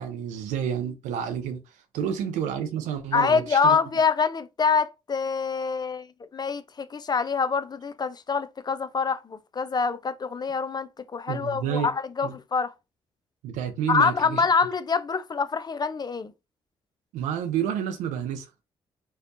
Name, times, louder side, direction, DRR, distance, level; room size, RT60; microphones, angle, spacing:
voice 1, 0.0-1.6 1.9-3.8 11.3-11.9 12.2-12.3 13.4-14.4 17.1-18.5, right 8 dB, 85° right, 0.5 m, -29 dB
voice 2, 3.1-6.1 6.3-12.7 13.9-16.3, left 5 dB, 35° left, 0.4 m, -25 dB
2.7 x 2.1 x 2.5 m
supercardioid pair, 50°, 12 cm